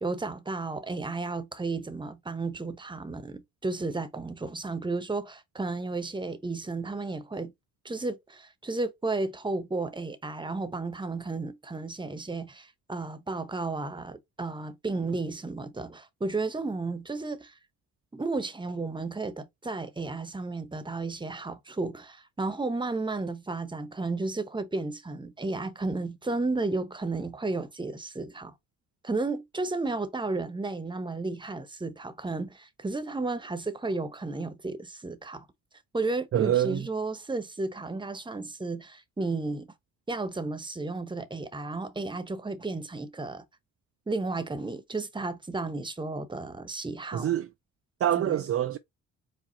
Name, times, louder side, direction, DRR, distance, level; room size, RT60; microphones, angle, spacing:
voice 1, 0.0-7.5 7.8-17.5 18.1-28.5 29.0-35.5 35.9-39.7 40.1-43.4 44.1-47.3 48.2-48.4, right 3 dB, 15° right, 1.0 m, -33 dB
voice 2, 36.3-36.9 47.1-47.5 48.0-48.8, right 11 dB, 45° right, 0.5 m, -25 dB
4.8 x 2.4 x 4.1 m
supercardioid pair, 70°, 33 cm